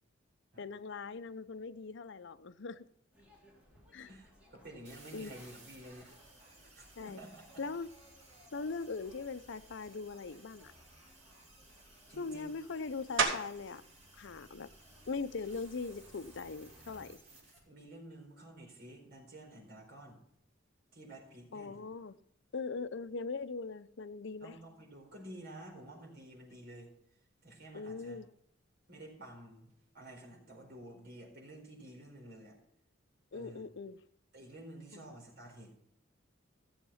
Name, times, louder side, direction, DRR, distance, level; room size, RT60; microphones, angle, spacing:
voice 1, 0.6-2.9 3.9-4.1 5.1-5.4 7.0-7.2 7.6-7.9 8.5-10.7 12.2-13.8 14.1-14.7 15.1-17.2 21.5-22.2 22.5-24.6 27.7-28.3 33.3-34.0 34.9-35.0, left 4 dB, 65° left, 0.6 m, -41 dB
sound 1, 3.1-17.1, equal, 5° right, 3.8 m, -62 dB
voice 2, 4.1-6.1 6.8-7.6 12.1-12.5 17.7-20.2 20.9-21.8 24.4-26.9 27.4-28.2 28.9-32.6 33.3-33.7 34.3-35.7, right 1 dB, 55° right, 4.5 m, -51 dB
sound 2, 4.8-17.6, right 2 dB, 35° right, 6.2 m, -60 dB
sound 3, 13.2-13.8 14.3-18.8 19.3-24.4 24.7-30.4, right 4 dB, 80° right, 3.4 m, -43 dB
15.0 x 7.2 x 5.7 m
head